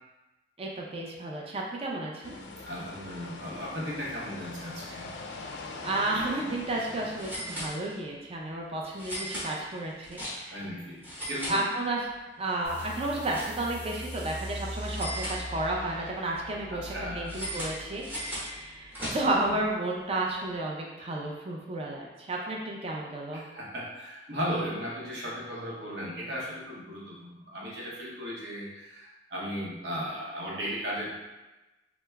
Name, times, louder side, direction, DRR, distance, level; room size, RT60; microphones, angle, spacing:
voice 1, 0.6-2.4 5.8-10.6 11.5-12.1 12.4-23.4, right 2 dB, 35° right, -2 dB, 0.5 m, -32 dB
sound 1, 2.2-7.6, left 3 dB, 70° left, 0.3 m, -42 dB
voice 2, 2.6-5.1 10.5-11.7 16.7-17.4 19.0-19.2 23.3-31.1, equal, 70° right, -5 dB, 0.8 m, -36 dB
sound 2, 7.2-8.2 9.0-10.7 11.0-12.2 12.5-13.9 14.8-15.9 17.3-19.5, equal, 10° right, 0.9 m, -38 dB
sound 3, 12.6-19.8, equal, 10° left, 0.6 m, -42 dB
3.3 x 2.0 x 3.3 m, 1.1 s
head